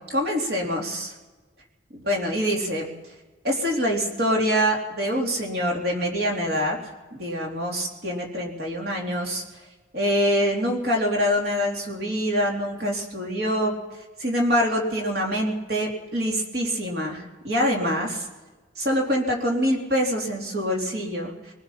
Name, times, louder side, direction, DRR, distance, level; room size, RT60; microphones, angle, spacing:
voice 1, 0.1-1.1 1.9-2.9 3.4-6.8 7.1-9.4 9.9-13.7 14.2-18.2 18.8-21.3, equal, 55° right, 0 dB, 3.4 m, -25 dB
24.0 x 20.5 x 5.8 m, 1.3 s
head